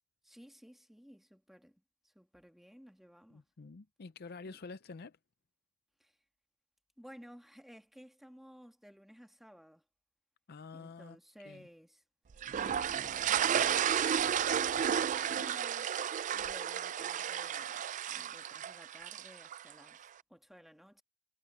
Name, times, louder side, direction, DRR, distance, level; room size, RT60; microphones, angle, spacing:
voice 1, 0.2-3.4 4.4-4.6 6.0-6.2 7.0-9.8 10.7-12.0 12.5-15.9 16.3-21.0, equal, ahead, 1.5 m, -56 dB
voice 2, 3.3-5.2 10.5-11.2 11.4-11.7, left 4 dB, 45° left, 0.5 m, -48 dB
sound 1, 12.4-19.7, right 9 dB, 35° right, 0.3 m, -32 dB
head